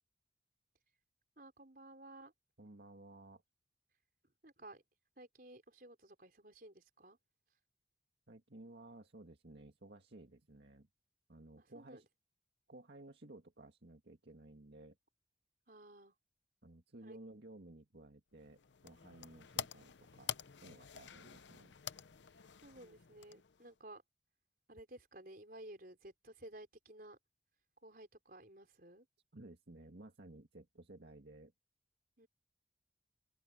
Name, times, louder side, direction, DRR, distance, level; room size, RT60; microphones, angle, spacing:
voice 1, 1.4-2.3 4.4-4.8 5.2-7.2 11.6-12.0 15.7-16.1 17.0-17.2 22.6-24.0 24.7-27.2 27.8-29.1 32.2-32.3, right 1 dB, 50° right, 4.6 m, -55 dB
voice 2, 2.6-3.4 8.3-10.9 11.3-12.1 12.7-15.0 16.6-20.3 20.6-21.7 29.3-31.5, right 2 dB, 70° right, 1.9 m, -56 dB
sound 1, 18.4-23.8, left 9 dB, 85° left, 0.8 m, -48 dB
open air
head